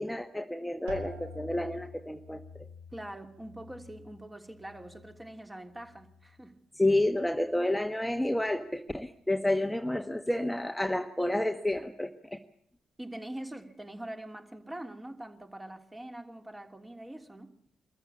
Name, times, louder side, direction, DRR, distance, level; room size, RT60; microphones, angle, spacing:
voice 1, 0.0-2.7 6.7-12.4, left 1 dB, 5° left, 1.4 m, -30 dB
sound 1, 0.9-6.5 6.8-7.5 8.1-8.5, left 1 dB, 80° right, 2.5 m, -49 dB
voice 2, 2.9-6.6 13.0-17.5, right 1 dB, 15° right, 3.1 m, -43 dB
24.0 x 14.5 x 8.6 m
hypercardioid pair, 45°, 0 cm